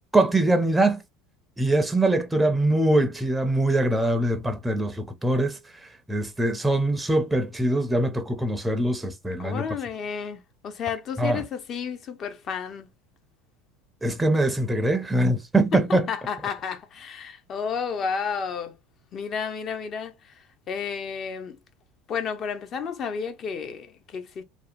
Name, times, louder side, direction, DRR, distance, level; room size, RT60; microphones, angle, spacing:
voice 1, 0.1-1.0 1.6-9.7 11.2-11.4 14.0-16.1, right 1 dB, 10° right, 0.5 m, -23 dB
voice 2, 9.4-12.9 15.7-18.8 19.1-21.6 22.1-24.4, left 6 dB, 40° left, 0.6 m, -32 dB
2.7 x 2.1 x 2.5 m
hypercardioid pair, 90°, 0 cm